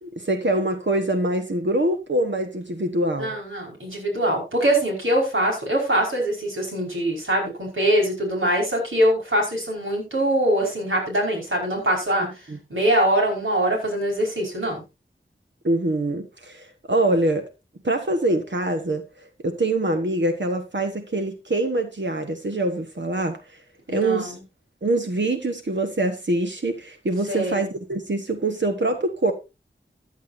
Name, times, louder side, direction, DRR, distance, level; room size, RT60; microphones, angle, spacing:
voice 1, 0.0-3.3 12.5-12.6 15.6-17.5 17.8-19.0 19.4-23.4 23.9-24.3 24.8-29.3, right 2 dB, 65° right, 1.4 m, -24 dB
voice 2, 3.2-12.3 12.7-14.8 23.9-24.3 27.3-27.7, right 1 dB, 80° right, 5.2 m, -23 dB
15.0 x 9.7 x 2.7 m
wide cardioid pair, 45°, 20 cm